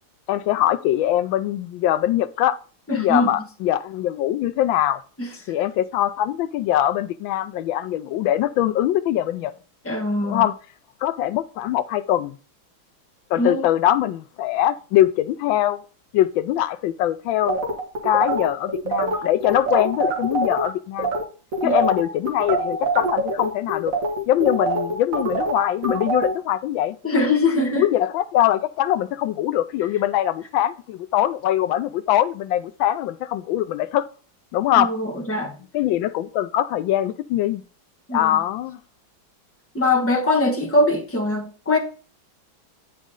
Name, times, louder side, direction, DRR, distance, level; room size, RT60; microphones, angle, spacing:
voice 1, 0.3-2.6 2.9-5.0 5.5-9.5 10.2-10.5 11.0-12.4 13.3-15.8 16.1-17.6 18.0-21.1 21.6-23.9 24.3-27.0 27.7-34.1 34.5-34.9 35.7-37.6 38.1-38.8, left 12 dB, 85° left, 1.3 m, -22 dB
voice 2, 2.9-3.3 5.2-5.3 9.8-10.4 13.4-13.7 21.6-21.8 27.0-27.8 34.8-35.5 38.1-38.3 39.7-41.8, left 2 dB, 10° left, 1.1 m, -22 dB
sound 1, 17.5-20.7 21.0-21.2 21.5-26.3, right 2 dB, 45° right, 2.2 m, -24 dB
9.1 x 5.2 x 3.7 m
omnidirectional pair, 2.1 m